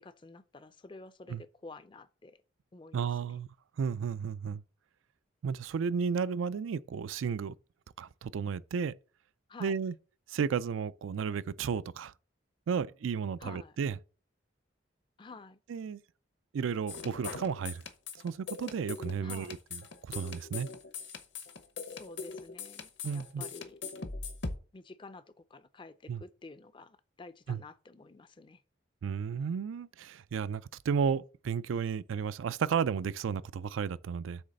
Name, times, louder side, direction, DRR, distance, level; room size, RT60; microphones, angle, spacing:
voice 1, 0.0-2.4 2.7-3.4 9.5-9.8 13.4-13.8 15.2-15.6 19.2-19.6 22.0-23.8 24.7-28.6, left 3 dB, 25° left, 0.4 m, -50 dB
voice 2, 2.9-3.5 3.8-4.6 5.4-7.5 8.0-8.9 9.6-9.9 10.3-12.1 12.7-13.9 15.7-16.0 16.5-17.8 18.2-19.8 20.1-20.7 23.0-23.4 26.1-26.2 27.5-27.6 29.0-34.4, right 6 dB, 85° right, 0.4 m, -33 dB
sound 1, 16.9-24.6, left 4 dB, 65° left, 0.9 m, -41 dB
7.9 x 3.2 x 6.4 m
head